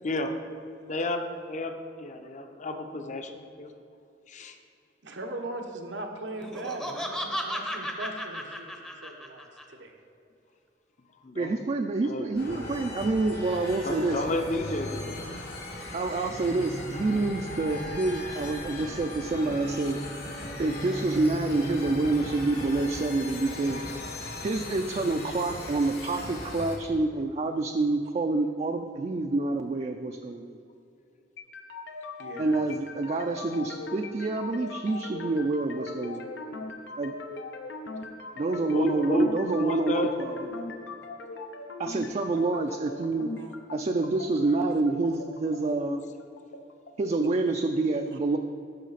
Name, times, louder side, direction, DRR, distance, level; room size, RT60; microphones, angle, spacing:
voice 1, 0.0-0.4 0.8-1.2 1.5-3.7 4.3-4.6 11.2-11.6 12.0-12.3 13.8-15.2 38.7-40.1, left 2 dB, 40° left, 6 dB, 0.6 m, -32 dB
voice 2, 5.0-8.7 9.0-9.9 32.2-32.6 43.4-43.5 44.7-44.8, right 2 dB, 90° right, 2 dB, 1.0 m, -39 dB
Laughter, 6.4-9.6, equal, 5° left, 0.6 m, -34 dB
voice 3, 11.3-14.2 15.9-20.0 20.6-23.8 24.4-30.6 32.4-36.3 37.0-37.1 38.4-40.3 41.8-43.3 43.7-46.0 47.0-48.4, right 3 dB, 35° right, 5 dB, 0.3 m, -27 dB
sound 1, 12.4-26.8, left 1 dB, 60° left, 1.6 m, -37 dB
sound 2, 31.4-47.4, left 3 dB, 90° left, 0.7 m, -40 dB
12.5 x 5.0 x 4.0 m, 2.6 s
head